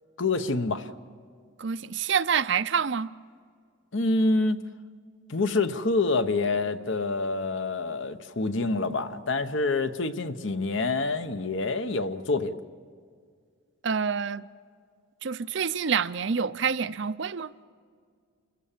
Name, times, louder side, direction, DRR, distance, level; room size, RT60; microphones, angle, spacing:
voice 1, 0.2-0.9 3.9-4.6 5.3-12.6, left 3 dB, 60° left, 0.9 m, -27 dB
voice 2, 1.6-3.1 13.8-14.4 15.2-17.5, right 6 dB, 60° right, 0.6 m, -27 dB
29.5 x 15.5 x 7.4 m
head